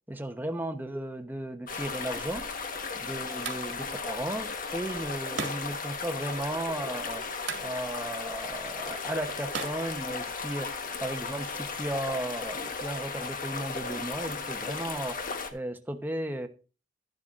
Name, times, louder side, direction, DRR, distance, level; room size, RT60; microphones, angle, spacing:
voice 1, 0.1-2.5 2.9-7.2 7.6-15.3 15.5-16.5, right 1 dB, 10° right, 1.0 m, -35 dB
sound 1, 1.7-15.5, left 4 dB, 50° left, 1.3 m, -36 dB
sound 2, 3.4-10.7, right 5 dB, 80° right, 1.9 m, -43 dB
11.5 x 11.5 x 2.5 m
head